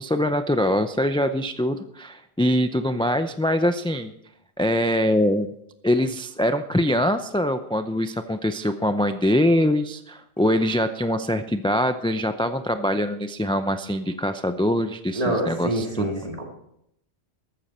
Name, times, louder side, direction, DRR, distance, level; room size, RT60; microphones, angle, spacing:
voice 1, 0.0-4.1 4.6-5.5 5.8-16.1, equal, 10° left, 9 dB, 0.4 m, -23 dB
voice 2, 15.2-16.4, right 1 dB, 35° right, 1 dB, 2.5 m, -26 dB
14.0 x 13.5 x 4.3 m, 0.77 s
omnidirectional pair, 1.1 m